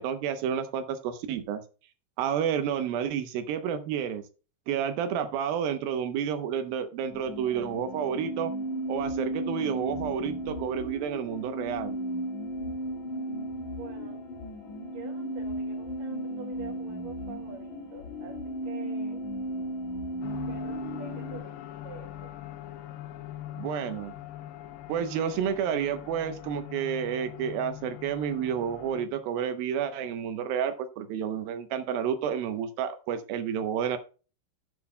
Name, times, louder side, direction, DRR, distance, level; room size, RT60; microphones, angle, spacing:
voice 1, 0.0-1.6 2.2-4.2 4.7-8.5 8.9-12.0 23.5-24.1 24.9-34.0, right 8 dB, 75° right, 9 dB, 2.2 m, -30 dB
sound 1, 7.1-21.4, right 1 dB, 50° left, 3.1 m, -35 dB
voice 2, 13.6-14.2 14.9-18.4 18.6-19.2 20.2-22.3, right 5 dB, 55° right, 2 dB, 3.2 m, -47 dB
sound 2, 20.2-29.1, left 13 dB, 80° left, 2.8 m, -42 dB
11.0 x 8.3 x 2.2 m, 0.34 s
omnidirectional pair, 5.1 m